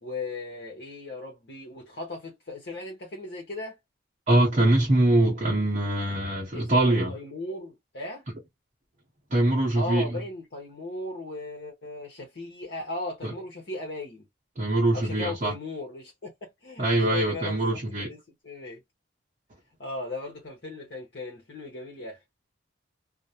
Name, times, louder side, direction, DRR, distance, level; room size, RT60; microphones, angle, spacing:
voice 1, 0.0-3.8 6.5-8.2 9.7-14.3 14.9-16.3 16.6-18.8 19.8-22.2, left 2 dB, 60° left, 0.8 m, -37 dB
voice 2, 4.3-7.2 9.3-10.2 13.2-13.3 14.6-15.5 16.8-18.1, right 1 dB, 35° right, 0.7 m, -23 dB
2.3 x 2.0 x 2.7 m
head